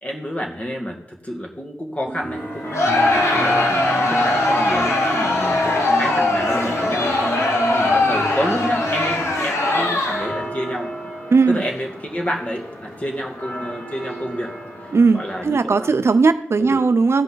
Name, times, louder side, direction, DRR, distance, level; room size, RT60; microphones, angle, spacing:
voice 1, 0.0-7.2 7.7-10.9 11.5-14.5 15.1-15.9 16.6-16.8, equal, 30° left, 1 dB, 1.9 m, -29 dB
sound 1, 2.0-9.5, right 2 dB, 35° right, 0.8 m, -32 dB
sound 2, 2.3-15.5, equal, 65° left, 2.3 m, -35 dB
Crowd, 2.7-10.4, left 2 dB, 85° left, 1.4 m, -20 dB
voice 2, 11.3-11.6 14.9-17.2, right 4 dB, 65° right, 11 dB, 0.5 m, -17 dB
16.0 x 5.3 x 4.0 m, 0.67 s
wide cardioid pair, 90°, 5 cm